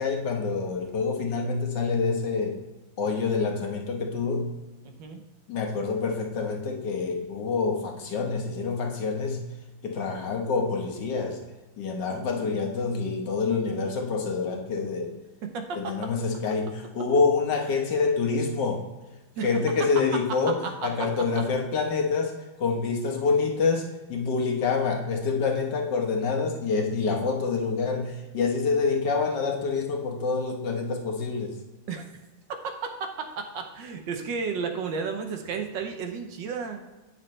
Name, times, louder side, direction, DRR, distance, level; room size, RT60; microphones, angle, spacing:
voice 1, 0.0-2.6 3.0-4.6 5.5-9.4 9.8-11.4 11.8-15.1 15.7-18.8 19.4-31.6, left 4 dB, 60° left, 1 dB, 1.6 m, -27 dB
voice 2, 4.8-5.2 15.4-16.1 19.4-19.6 20.4-21.1 31.9-32.0 32.6-36.8, right 5 dB, 70° right, 5 dB, 1.4 m, -33 dB
8.8 x 6.5 x 3.1 m, 1.1 s
omnidirectional pair, 2.2 m